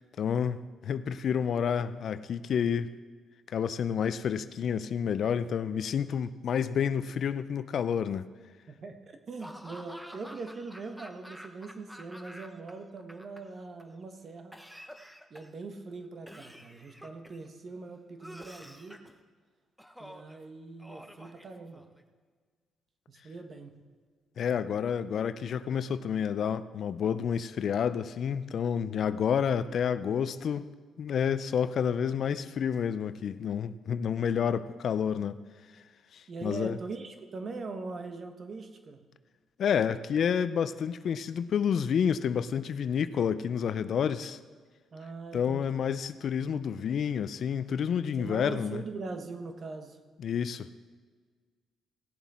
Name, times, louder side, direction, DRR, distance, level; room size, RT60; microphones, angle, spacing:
voice 1, 0.0-2.9 3.5-8.3 24.4-30.7 31.0-35.4 36.1-36.8 39.6-44.4 45.3-48.8 50.2-50.7, left 7 dB, 60° left, 0.4 m, -29 dB
voice 2, 8.7-14.6 15.3-19.0 20.0-21.9 23.1-23.8 36.3-39.0 44.9-45.8 48.2-50.0, right 3 dB, 45° right, 1.2 m, -41 dB
Laughter / Cough, 9.4-12.7 13.0-13.8 14.5-15.6 16.3-17.5 18.2-19.1 19.8-20.4 20.8-22.0, equal, ahead, 0.9 m, -48 dB
17.5 x 7.2 x 4.3 m
cardioid pair, 90°, 0 cm